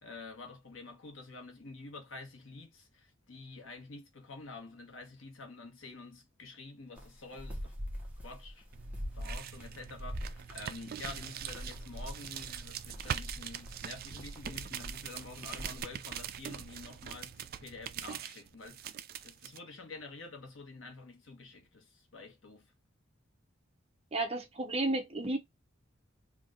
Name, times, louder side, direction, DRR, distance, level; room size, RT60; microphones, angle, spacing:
voice 1, 0.0-7.7 8.2-8.6 9.1-19.0 19.2-22.7, left 3 dB, 90° left, 1.2 m, -48 dB
sound 1, 7.0-15.8, equal, 10° right, 1.0 m, -44 dB
sound 2, 8.7-19.6, right 9 dB, 50° right, 0.3 m, -42 dB
voice 2, 24.1-25.4, right 2 dB, 30° right, 0.9 m, -32 dB
3.5 x 2.4 x 3.7 m
head